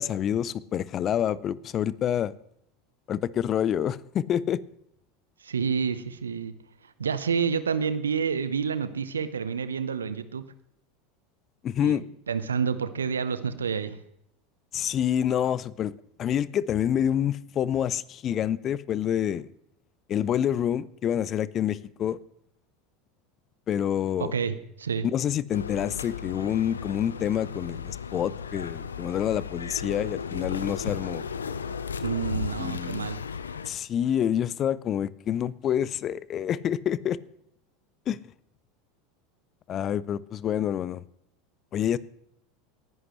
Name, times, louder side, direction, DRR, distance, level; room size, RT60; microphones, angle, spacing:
voice 1, 0.0-2.3 3.1-4.6 11.6-12.0 14.7-15.9 16.2-19.5 20.1-22.2 23.7-24.3 25.0-31.3 32.3-33.0 33.6-37.2 38.1-38.2 39.7-41.0 41.7-42.0, left 9 dB, 40° left, 0.6 m, -27 dB
voice 2, 5.4-6.5 7.0-10.4 11.8-14.0 24.2-25.1 32.0-33.2, right 6 dB, 80° right, 0.9 m, -29 dB
sound 1, 25.5-33.7, left 6 dB, 85° left, 0.7 m, -35 dB
18.5 x 11.0 x 3.2 m
figure-of-eight pair, 80°, 0 cm